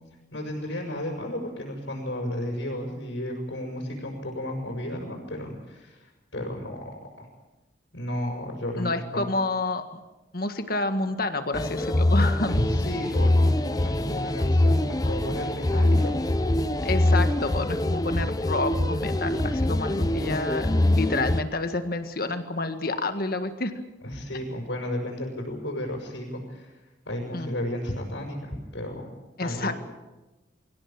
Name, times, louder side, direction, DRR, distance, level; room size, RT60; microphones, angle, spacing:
voice 1, 0.3-6.8 7.2-7.3 7.9-9.3 12.5-16.3 24.0-26.8 27.0-29.1 29.4-29.7, left 1 dB, 80° left, -1 dB, 6.2 m, -33 dB
voice 2, 8.8-10.0 10.3-12.6 16.8-23.7 27.3-27.5 29.4-29.7, left 2 dB, 55° left, 8 dB, 1.8 m, -29 dB
sound 1, 11.5-21.4, left 1 dB, 20° left, 0.8 m, -24 dB
24.5 x 16.5 x 8.9 m, 1.1 s
head